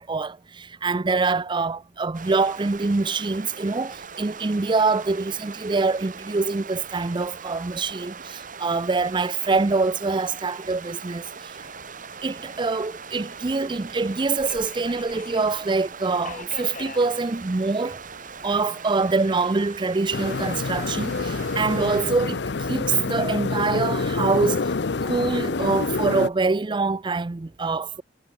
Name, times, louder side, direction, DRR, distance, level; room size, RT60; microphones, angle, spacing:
voice 1, 0.0-11.5 12.2-18.0 18.4-22.4 22.7-24.7 25.0-28.0, right 3 dB, 25° right, 0.5 m, -25 dB
sound 1, 2.1-22.1, right 5 dB, 50° right, 2.4 m, -40 dB
Subway metro underground, 11.6-24.6, left 4 dB, 50° left, 3.2 m, -48 dB
sound 2, 20.1-26.3, left 3 dB, 70° left, 0.7 m, -27 dB
head